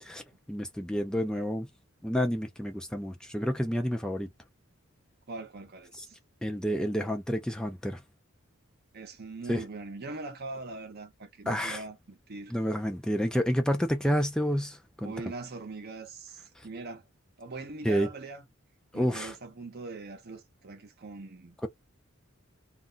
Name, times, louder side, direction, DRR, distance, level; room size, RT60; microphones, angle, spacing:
voice 1, 0.0-1.7 2.0-4.3 6.0-6.1 6.4-8.0 9.5-9.6 11.5-11.8 12.5-15.1 16.6-16.7 17.8-18.1 18.9-19.3, equal, 5° left, 0.4 m, -29 dB
voice 2, 5.3-6.2 8.9-12.5 15.0-17.1 17.4-18.4 18.9-21.6, right 3 dB, 50° right, 0.7 m, -41 dB
2.4 x 2.1 x 3.8 m
head